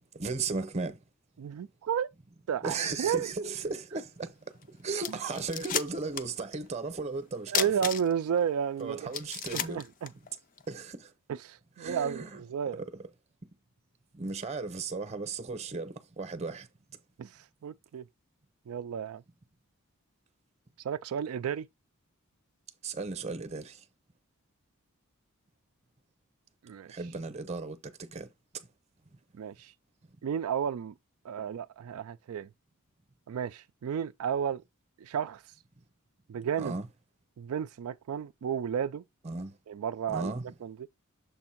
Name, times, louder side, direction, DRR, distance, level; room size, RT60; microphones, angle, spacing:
voice 1, 0.1-1.0 2.6-7.9 8.8-9.8 10.7-11.1 11.8-12.4 12.7-13.0 14.1-16.7 22.8-23.8 26.9-28.3 28.5-28.7 36.6-36.9 39.2-39.6 40.1-40.4, right 4 dB, 30° right, 0.7 m, -36 dB
voice 2, 1.4-2.1 2.5-3.3 5.1-5.2 7.5-9.1 9.5-10.1 11.4-12.2 12.5-12.8 17.2-18.0 18.7-19.2 20.8-21.7 26.6-26.9 29.3-29.7 30.2-30.9 31.2-32.5 33.3-34.6 35.0-35.4 36.3-36.7 37.4-39.0 39.7-40.3 40.6-40.7, right 8 dB, 80° right, 0.3 m, -32 dB
sound 1, 4.6-4.7 5.0-6.4 6.7-6.8 7.5-8.4 8.8-8.9 9.1-10.7, left 8 dB, 35° left, 0.4 m, -33 dB
6.9 x 2.6 x 5.7 m
head